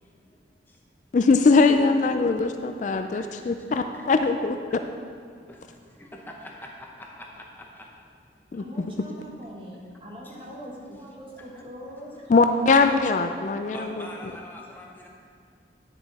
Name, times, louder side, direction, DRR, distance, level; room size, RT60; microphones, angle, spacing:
voice 1, 1.1-4.8 8.5-8.9 12.3-14.1, left 4 dB, 45° left, 7 dB, 0.3 m, -21 dB
voice 2, 2.9-4.1 5.5-7.9 8.8-8.9 10.2-10.5 10.9-11.0 11.5-12.0 13.5-15.1, left 1 dB, 10° left, -1 dB, 0.8 m, -45 dB
voice 3, 8.6-12.3, equal, 30° right, -2 dB, 1.4 m, -42 dB
9.9 x 7.0 x 4.1 m, 2.3 s
head